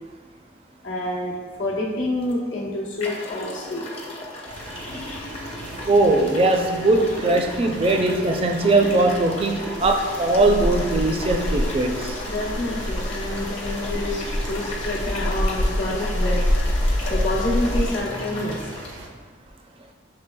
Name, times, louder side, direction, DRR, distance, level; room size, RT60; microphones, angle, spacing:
voice 1, 0.8-3.9 7.8-8.1 12.3-18.7, left 1 dB, 85° left, -4 dB, 1.0 m, -28 dB
sound 1, 2.2-2.3 3.0-18.9, left 1 dB, 30° left, 0.6 m, -36 dB
sound 2, 4.5-19.1, right 2 dB, 85° right, 0.7 m, -40 dB
voice 2, 5.9-12.2, right 2 dB, 30° right, 3 dB, 0.4 m, -20 dB
sound 3, 9.8-18.0, left 1 dB, 70° left, 0.5 m, -26 dB
6.6 x 3.1 x 2.2 m, 1.4 s
head